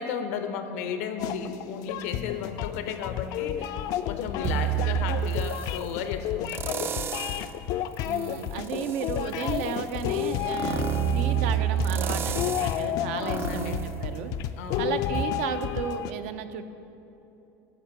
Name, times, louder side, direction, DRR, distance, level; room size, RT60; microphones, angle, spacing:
voice 1, 0.0-3.8 4.0-6.8 13.1-13.8 14.5-15.0, left 6 dB, 85° left, 8 dB, 0.8 m, -34 dB
sound 1, 1.2-16.1, left 11 dB, 60° left, 0.3 m, -31 dB
sound 2, 4.4-5.9 6.5-7.5 8.0-14.7 15.1-15.2, right 10 dB, 30° right, 0.4 m, -30 dB
voice 2, 8.0-10.8 11.1-14.3 14.8-16.6, right 8 dB, 80° right, 9 dB, 0.6 m, -33 dB
11.0 x 4.4 x 6.6 m, 2.9 s
supercardioid pair, 125°, 7 cm